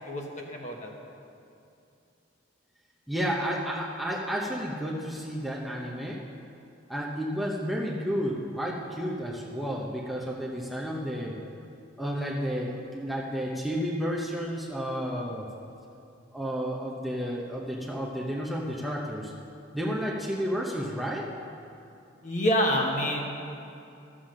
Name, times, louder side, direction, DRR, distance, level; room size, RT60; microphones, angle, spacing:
voice 1, 0.0-0.9 22.2-23.3, equal, 40° left, 1 dB, 1.3 m, -27 dB
voice 2, 3.1-6.2 6.9-11.3 12.0-15.5 16.3-19.3 19.7-21.3, equal, ahead, -4 dB, 0.9 m, -31 dB
13.5 x 7.4 x 6.4 m, 2.7 s
head